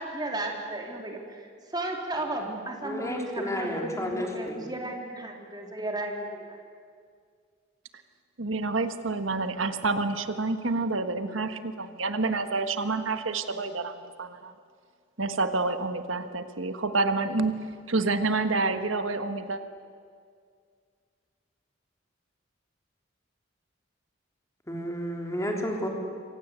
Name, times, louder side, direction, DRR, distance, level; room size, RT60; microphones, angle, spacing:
voice 1, 0.0-1.4 1.7-6.6, right 1 dB, 20° right, 1 dB, 3.4 m, -34 dB
voice 2, 2.8-4.8 24.7-25.9, equal, 15° left, 1 dB, 3.5 m, -32 dB
voice 3, 8.4-14.5 15.2-19.6, right 3 dB, 90° right, 9 dB, 1.5 m, -28 dB
27.5 x 24.5 x 8.3 m, 2.1 s
head